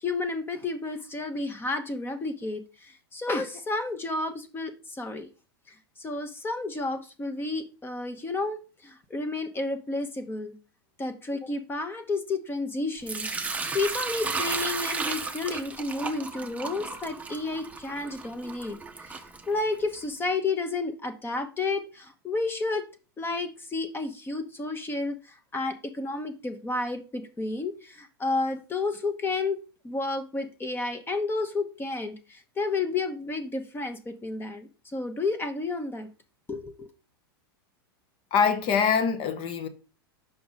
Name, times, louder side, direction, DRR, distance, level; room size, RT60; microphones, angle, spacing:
voice 1, 0.0-5.3 6.0-10.5 11.0-13.3 13.7-22.9 23.2-36.1 36.5-36.9, left 3 dB, 15° left, 0.9 m, -31 dB
Sink (filling or washing) / Liquid, 13.1-20.0, right 4 dB, 10° right, 0.7 m, -34 dB
voice 2, 38.3-39.7, left 6 dB, 45° left, 1.0 m, -24 dB
5.8 x 5.3 x 4.0 m
hypercardioid pair, 100°, 13 cm